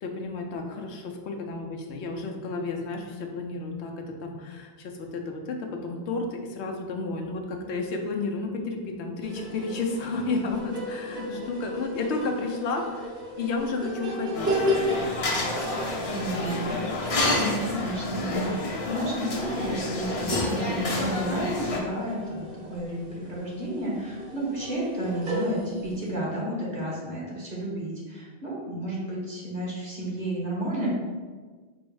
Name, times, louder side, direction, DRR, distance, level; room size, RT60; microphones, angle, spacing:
voice 1, 0.0-14.5 16.3-16.9, left 3 dB, 85° left, 2 dB, 0.9 m, -32 dB
sound 1, 9.2-26.1, equal, 80° right, 1.3 m, -35 dB
sound 2, 14.3-21.8, left 2 dB, 40° left, 0.5 m, -29 dB
voice 2, 16.0-16.5 17.3-30.9, right 1 dB, 40° right, -6 dB, 1.3 m, -32 dB
4.4 x 2.1 x 4.6 m, 1.4 s
omnidirectional pair, 1.1 m